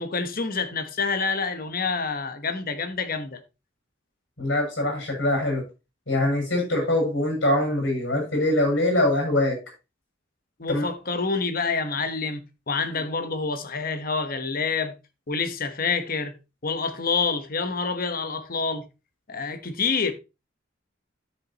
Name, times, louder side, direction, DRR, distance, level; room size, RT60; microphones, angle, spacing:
voice 1, 0.0-3.4 10.6-14.9 15.3-16.3 16.6-18.8 19.3-20.1, left 4 dB, 50° left, 1.2 m, -27 dB
voice 2, 4.4-5.7 6.1-9.6 10.7-10.9 12.9-13.0, left 1 dB, 75° left, 7.0 m, -23 dB
12.5 x 7.0 x 3.0 m
head